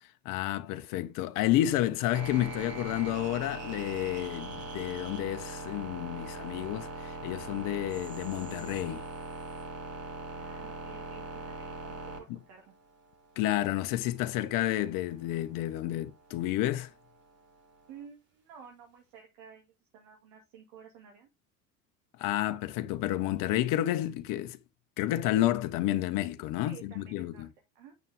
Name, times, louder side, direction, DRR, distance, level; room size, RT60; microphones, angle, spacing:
voice 1, 0.0-9.0 13.4-16.9 22.2-24.6 25.0-27.5, left 14 dB, 45° left, 0.9 m, -30 dB
sound 1, 2.1-18.0, right 3 dB, 35° right, 3.8 m, -42 dB
voice 2, 10.3-12.7 17.9-21.3 26.6-27.5 27.8-27.9, right 7 dB, 60° right, 2.0 m, -52 dB
9.1 x 6.1 x 3.5 m
figure-of-eight pair, 65°, 44 cm